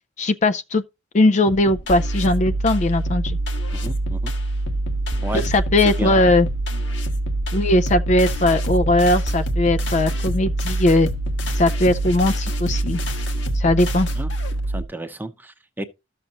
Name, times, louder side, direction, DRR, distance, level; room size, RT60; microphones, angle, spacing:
voice 1, 0.2-0.8 1.1-3.4 5.4-6.5 7.5-11.1 11.5-13.0 13.5-14.1, left 2 dB, 40° left, 0.4 m, -19 dB
sound 1, 1.5-14.7, left 1 dB, 70° left, 1.4 m, -33 dB
sound 2, 1.9-14.8, right 2 dB, 55° right, 1.0 m, -25 dB
voice 2, 3.7-4.3 5.2-5.5 5.8-6.2 14.1-14.3 14.7-15.8, right 1 dB, 10° right, 0.8 m, -31 dB
13.5 x 6.6 x 2.9 m
head